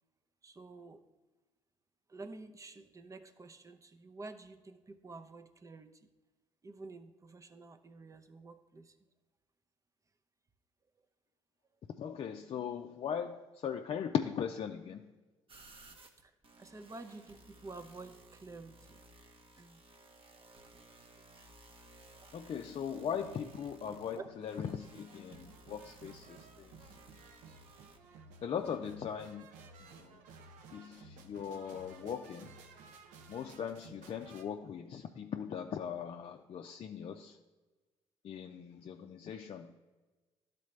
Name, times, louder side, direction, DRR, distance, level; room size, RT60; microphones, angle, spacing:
voice 1, 0.4-1.0 2.1-6.0 6.6-8.9 16.2-16.3 16.6-19.0 19.6-19.8 20.3-20.5 22.1-22.4 24.1-24.3, right 3 dB, 25° right, 8 dB, 0.7 m, -50 dB
voice 2, 12.0-15.1 22.3-26.7 28.4-29.5 29.8-30.2 30.7-32.6 33.3-37.4 38.2-39.7, left 8 dB, 50° left, 4 dB, 0.5 m, -39 dB
sound 1, 15.5-28.0, right 2 dB, 45° right, 1.0 m, -58 dB
sound 2, 22.9-34.4, right 4 dB, 75° right, 0.7 m, -56 dB
12.0 x 4.1 x 3.2 m, 1.2 s
hypercardioid pair, 50°, 13 cm